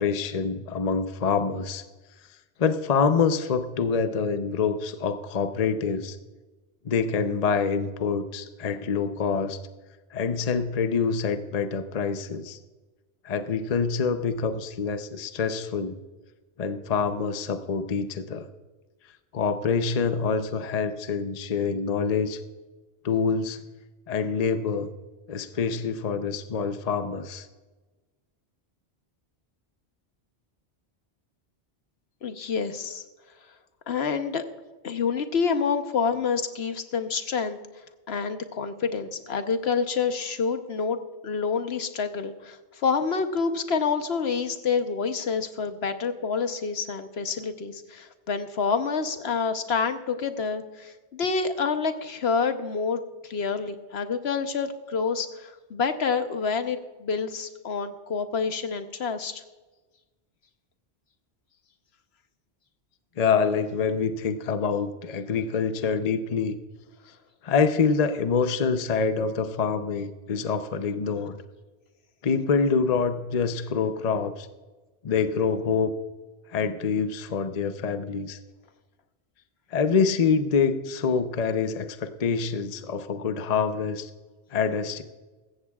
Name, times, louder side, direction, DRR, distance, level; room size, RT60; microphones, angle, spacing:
voice 1, 0.0-1.8 2.6-6.2 6.8-9.6 10.1-12.6 13.2-16.0 16.6-18.5 19.3-22.4 23.0-23.6 24.1-24.9 25.3-27.5 63.2-66.6 67.4-71.4 72.2-74.5 75.0-75.9 76.5-78.4 79.7-84.1 84.5-85.0, left 5 dB, 40° left, 9 dB, 0.7 m, -26 dB
voice 2, 32.2-33.0 33.9-34.4 34.8-37.6 38.1-41.0 41.2-59.4, left 5 dB, 70° left, 8 dB, 1.1 m, -28 dB
15.5 x 14.5 x 2.4 m, 1.2 s
omnidirectional pair, 1.1 m